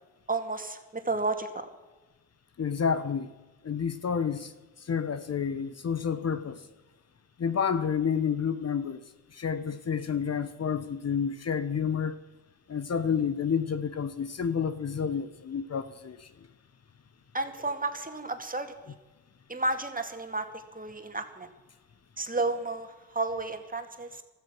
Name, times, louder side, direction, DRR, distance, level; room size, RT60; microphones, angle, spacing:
voice 1, 0.3-1.7 17.3-18.9 19.5-20.5 20.7-21.5 22.2-24.2, right 2 dB, 25° right, 2.3 m, -32 dB
voice 2, 2.6-3.3 3.6-4.5 4.8-6.7 7.4-12.2 12.7-16.3, left 7 dB, 45° left, 1.0 m, -30 dB
15.5 x 13.5 x 6.1 m
cardioid pair, 65°, 34 cm